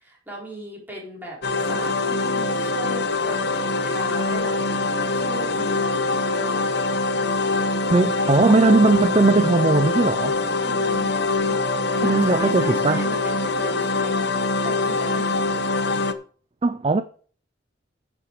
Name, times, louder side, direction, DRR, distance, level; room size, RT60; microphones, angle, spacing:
voice 1, 0.0-3.4 3.8-6.7 10.6-14.4 14.6-15.5, equal, 10° right, 4.7 m, -37 dB
sound 1, 1.4-16.1, left 3 dB, 60° left, 0.9 m, -23 dB
voice 2, 7.9-10.4 11.9-13.0 16.6-17.0, right 3 dB, 30° right, 0.5 m, -19 dB
11.0 x 7.1 x 5.0 m
head